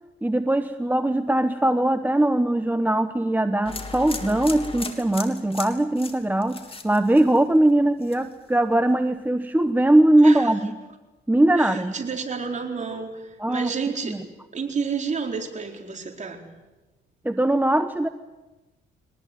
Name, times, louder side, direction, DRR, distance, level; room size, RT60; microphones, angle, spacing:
voice 1, 0.2-6.6 6.8-10.8 11.3-11.9 13.4-13.7 14.0-14.2 17.2-18.1, right 1 dB, 10° right, 10 dB, 1.0 m, -20 dB
sound 1, 3.6-7.7 8.0-8.5, left 3 dB, 30° left, 3.2 m, -36 dB
voice 2, 11.6-14.2 14.5-16.5, right 5 dB, 35° right, 2 dB, 4.3 m, -30 dB
23.0 x 19.5 x 9.4 m, 1.1 s
cardioid pair, 90°, 20 cm